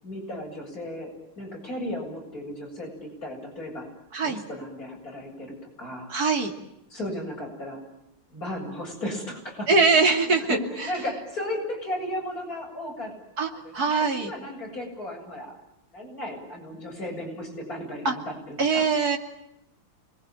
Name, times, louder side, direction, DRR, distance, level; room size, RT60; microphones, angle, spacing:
voice 1, 0.0-3.9 4.2-6.1 6.9-7.8 8.3-9.8 10.2-13.1 13.5-15.5 15.9-18.9, left 1 dB, 40° left, 0 dB, 8.6 m, -35 dB
voice 2, 4.1-4.4 6.1-6.5 9.7-10.9 13.4-14.3 18.0-18.1 18.6-19.2, right 4 dB, 45° right, 3 dB, 3.2 m, -22 dB
29.0 x 22.0 x 9.1 m, 0.82 s
omnidirectional pair, 2.4 m